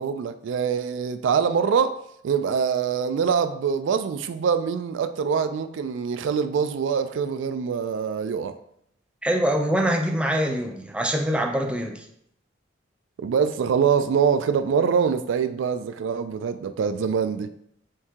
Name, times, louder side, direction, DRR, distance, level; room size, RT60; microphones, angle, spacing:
voice 1, 0.0-8.5 13.2-17.5, right 6 dB, 75° right, 0.3 m, -24 dB
voice 2, 9.2-12.0, equal, 5° right, 0.4 m, -24 dB
4.5 x 2.7 x 3.5 m
head